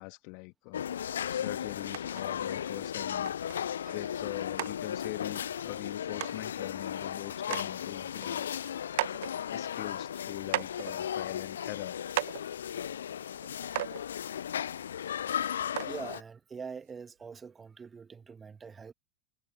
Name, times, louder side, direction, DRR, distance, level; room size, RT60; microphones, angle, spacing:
voice 1, 0.0-3.4 3.9-8.9 9.5-12.0, left 36 dB, 45° left, 1.8 m, -43 dB
sound 1, 0.7-16.2, left 9 dB, 65° left, 0.6 m, -36 dB
sound 2, 1.9-2.2 2.8-2.9 3.3-3.6 4.2-4.3 4.6-4.7 5.8-5.9 6.2-6.4 7.0-7.1 7.4-7.7 8.1-9.3 10.0-10.1 10.5-10.9 11.6-11.8 12.1-12.4 13.4-13.5 13.8-14.0 15.1-15.2 15.8-16.0 16.9-17.0, right 18 dB, 50° right, 0.9 m, -35 dB
voice 2, 12.7-13.1 13.9-14.1 15.8-18.9, right 5 dB, 15° right, 2.2 m, -45 dB
figure-of-eight pair, 90°, 0 cm